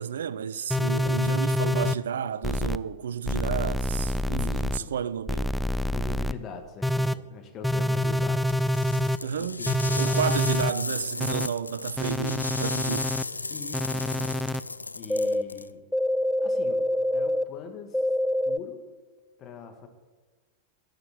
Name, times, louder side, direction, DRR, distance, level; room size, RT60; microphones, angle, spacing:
voice 1, 0.0-5.5 9.2-9.7 10.0-13.2, right 8 dB, 65° right, 0.4 m, -31 dB
sound 1, 0.7-1.9 2.4-2.8 3.2-4.8 5.3-6.3 6.8-7.1 7.6-9.2 9.7-10.7 11.2-11.5 12.0-13.2 13.7-14.6 15.1-15.4 15.9-17.4 17.9-18.6, left 1 dB, ahead, 0.4 m, -26 dB
voice 2, 4.3-5.0 5.9-8.9 9.4-10.4 13.5-14.4 15.0-15.8 16.4-18.1 18.5-18.8 19.4-19.9, left 6 dB, 30° left, 1.9 m, -42 dB
sound 2, 8.5-15.7, left 3 dB, 80° left, 0.3 m, -35 dB
11.0 x 6.6 x 9.3 m
figure-of-eight pair, 90°, 0 cm